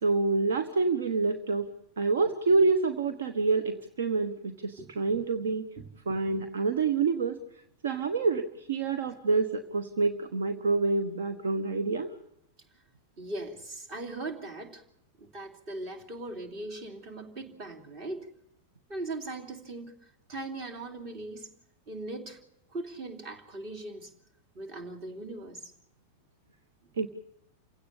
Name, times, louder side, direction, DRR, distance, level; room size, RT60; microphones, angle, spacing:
voice 1, 0.0-1.7 2.0-5.6 6.1-7.4 7.8-12.1 27.0-27.1, right 4 dB, 65° right, 1.2 m, -27 dB
voice 2, 13.2-14.8 15.2-18.3 18.9-21.5 21.9-22.4 22.7-24.1 24.5-25.7, right 2 dB, 40° right, 3.1 m, -39 dB
29.0 x 17.0 x 6.9 m
figure-of-eight pair, 90°, 0 cm